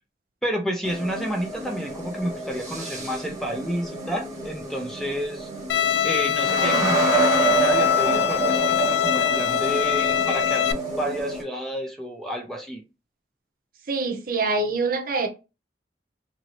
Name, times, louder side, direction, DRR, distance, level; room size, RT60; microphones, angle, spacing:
voice 1, 0.4-5.5 6.0-12.8, equal, ahead, 0.4 m, -30 dB
sound 1, 0.8-11.4, right 4 dB, 20° right, 0.9 m, -28 dB
Bowed string instrument, 5.7-10.7, left 11 dB, 70° left, 0.3 m, -23 dB
voice 2, 13.9-15.3, right 3 dB, 50° right, 0.6 m, -25 dB
2.9 x 2.6 x 2.9 m
head